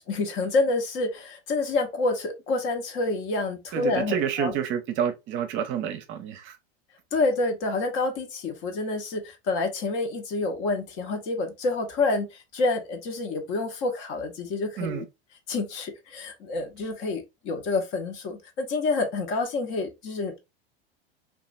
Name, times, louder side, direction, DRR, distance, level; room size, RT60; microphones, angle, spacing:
voice 1, 0.1-4.5 7.1-15.0 15.5-20.5, left 3 dB, 45° left, 0.8 m, -28 dB
voice 2, 3.7-6.6 14.8-15.0, right 8 dB, 40° right, 0.6 m, -29 dB
2.9 x 2.4 x 2.4 m
hypercardioid pair, 95°, 31 cm